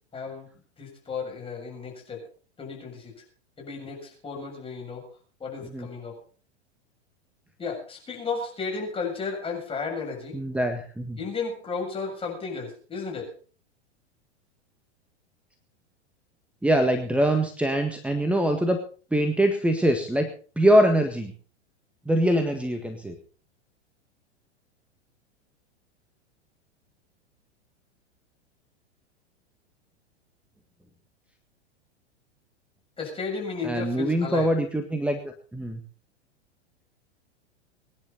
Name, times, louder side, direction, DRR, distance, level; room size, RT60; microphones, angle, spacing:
voice 1, 0.1-0.5 0.8-2.2 2.6-3.1 3.6-5.0 5.4-6.2 7.6-10.4 11.2-13.3 33.0-34.5, left 5 dB, 15° left, 1 dB, 7.2 m, -33 dB
voice 2, 10.3-11.2 16.6-18.8 19.1-20.3 20.5-21.3 22.0-23.2 33.6-35.8, right 1 dB, 5° right, 6 dB, 1.7 m, -23 dB
23.0 x 11.0 x 4.2 m, 0.40 s
figure-of-eight pair, 95°, 35 cm